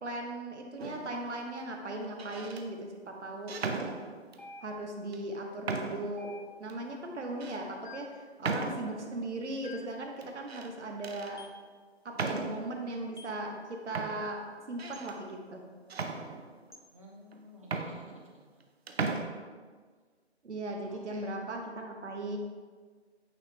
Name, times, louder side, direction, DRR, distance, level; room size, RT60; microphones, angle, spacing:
voice 1, 0.0-3.9 4.6-6.3 6.6-11.4 12.0-15.6 20.4-22.4, right 2 dB, 80° right, 2 dB, 1.2 m, -38 dB
sound 1, 0.8-1.2 2.0-2.6 3.5-4.5 5.1-5.2 5.7-6.2 6.7-6.8 7.4-7.6 8.4-9.1 10.2-10.7 11.0-11.3 12.1-12.8 13.6-13.7 13.9-15.2 15.9-16.8 17.3-17.4 17.6-18.6 18.9-19.2, right 4 dB, 65° right, 0.7 m, -36 dB
sound 2, 4.4-5.1 6.2-6.9 7.8-8.3 9.6-10.1 11.4-11.7 13.2-13.4 14.9-15.1 16.7-16.9, left 3 dB, 45° left, 0.4 m, -50 dB
voice 2, 16.9-18.6 20.8-21.3, equal, 30° right, -2 dB, 0.8 m, -54 dB
8.8 x 3.1 x 3.6 m, 1.5 s
hypercardioid pair, 175°, 34 cm